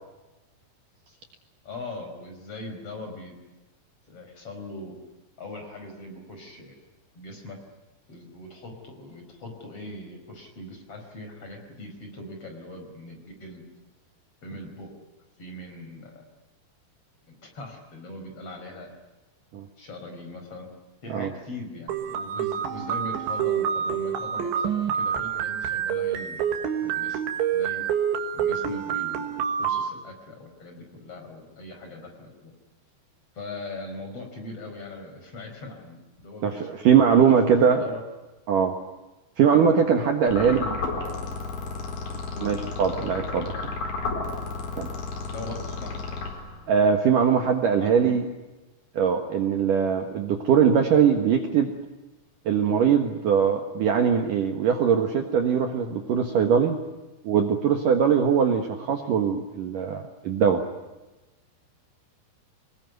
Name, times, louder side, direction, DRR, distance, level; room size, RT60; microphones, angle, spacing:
voice 1, 1.6-3.3 4.1-5.0 5.4-6.8 7.1-7.6 8.1-13.6 14.4-14.9 15.4-16.3 17.2-18.9 19.8-20.7 21.0-26.4 26.8-27.2 27.5-27.9 28.3-29.3 29.6-32.5 33.3-37.4 37.8-38.0 40.3-40.8 42.3-42.6 45.3-46.0 47.8-48.2, left 2 dB, 35° left, 4 dB, 5.6 m, -40 dB
sound 1, 21.9-29.9, right 8 dB, 85° right, 4.1 m, -27 dB
voice 2, 36.4-37.8 38.5-38.8 39.4-40.6 42.4-43.5 44.7-44.9 46.7-48.2 49.0-51.7 52.5-56.8 57.2-60.6, right 7 dB, 60° right, 5 dB, 2.6 m, -21 dB
sound 2, 40.3-46.8, left 3 dB, 50° left, 5.6 m, -32 dB
26.5 x 21.0 x 9.3 m, 1.1 s
omnidirectional pair, 5.2 m